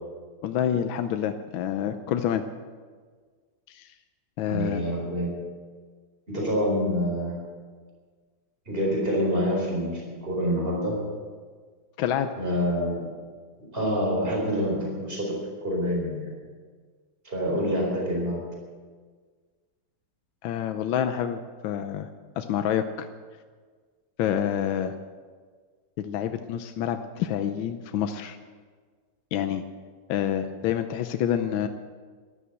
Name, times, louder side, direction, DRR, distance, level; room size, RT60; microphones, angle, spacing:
voice 1, 0.4-2.4 3.7-3.9 4.4-4.8 12.0-12.3 20.4-22.1 22.4-23.1 24.2-24.9 26.0-28.4 29.3-29.6 30.1-31.7, left 9 dB, 80° left, 8 dB, 1.5 m, -27 dB
voice 2, 4.5-5.4 6.3-7.3 8.7-11.0 12.4-13.1 13.7-15.3 15.6-16.3 17.2-18.4, equal, 25° right, -2 dB, 4.7 m, -26 dB
14.0 x 11.5 x 8.2 m, 1.6 s
omnidirectional pair, 2.2 m